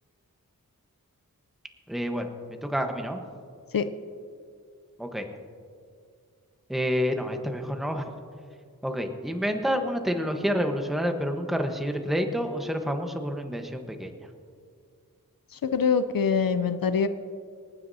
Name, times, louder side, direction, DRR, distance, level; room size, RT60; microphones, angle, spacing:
voice 1, 1.9-3.2 5.0-5.3 6.7-8.1 8.8-14.1, equal, ahead, 5 dB, 1.1 m, -28 dB
voice 2, 15.5-17.1, left 6 dB, 75° left, 11 dB, 0.6 m, -24 dB
27.0 x 9.5 x 2.7 m, 2.2 s
wide cardioid pair, 45°, 35 cm